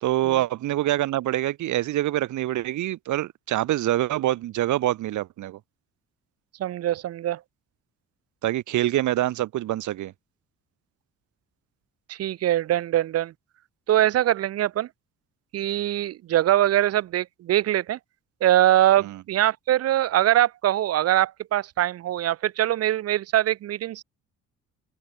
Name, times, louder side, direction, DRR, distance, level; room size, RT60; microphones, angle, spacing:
voice 1, 0.0-5.6 8.4-10.1 19.0-19.2, right 14 dB, 75° right, 1.1 m, -25 dB
voice 2, 6.6-7.4 12.1-13.3 13.9-14.9 15.5-18.0 18.4-24.0, right 13 dB, 55° right, 0.5 m, -22 dB
cardioid pair, 90°, 30 cm